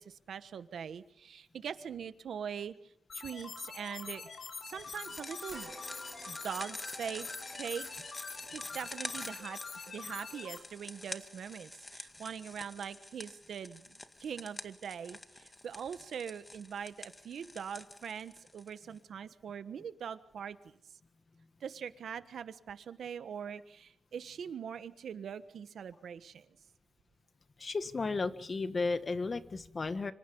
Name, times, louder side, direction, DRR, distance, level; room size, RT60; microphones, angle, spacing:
voice 1, 0.0-4.3 4.6-5.7 6.2-7.3 7.5-13.9 14.2-20.7 21.6-26.5, right 7 dB, 90° right, 12 dB, 1.3 m, -42 dB
sound 1, 3.1-10.6, left 5 dB, 65° left, 3.1 m, -45 dB
sound 2, 4.7-19.0, left 1 dB, 20° left, 2.0 m, -48 dB
sound 3, 5.5-14.1 14.5-14.6 16.1-16.2, right 4 dB, 65° right, 6.2 m, -59 dB
voice 2, 27.6-30.1, left 3 dB, 50° left, 11 dB, 1.8 m, -34 dB
26.5 x 25.5 x 5.5 m, 0.70 s
cardioid pair, 65°, 0 cm